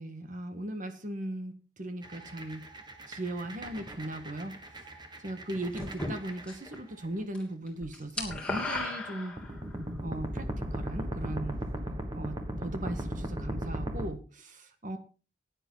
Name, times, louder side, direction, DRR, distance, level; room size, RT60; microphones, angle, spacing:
voice 1, 0.0-2.6 3.1-4.6 5.2-9.4 10.0-11.6 12.1-15.0, right 1 dB, 45° right, 8 dB, 1.7 m, -38 dB
sound 1, 2.0-7.0 9.4-14.1, equal, 25° right, 1.6 m, -38 dB
sound 2, 5.8-6.8 7.1-7.4 7.7-9.7, left 2 dB, 5° left, 3.0 m, -35 dB
15.5 x 10.0 x 3.9 m, 0.34 s
head